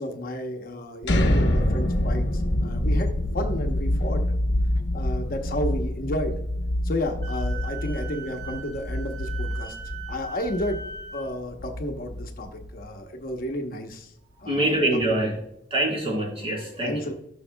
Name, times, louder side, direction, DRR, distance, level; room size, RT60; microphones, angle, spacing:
voice 1, 0.0-4.2 4.9-6.4 6.8-9.8 10.1-10.8 11.1-14.1 14.4-14.8 15.1-15.4 16.8-17.1, left 1 dB, 50° left, 4 dB, 0.9 m, -32 dB
sound 1, 1.0-12.9, left 1 dB, 80° left, 0.9 m, -26 dB
Wind instrument woodwind instrument, 7.2-11.3, right 5 dB, 65° right, 2.8 m, -40 dB
voice 2, 14.4-15.3 15.7-17.0, right 1 dB, 30° right, -3 dB, 3.3 m, -24 dB
12.0 x 6.4 x 2.2 m, 0.77 s
head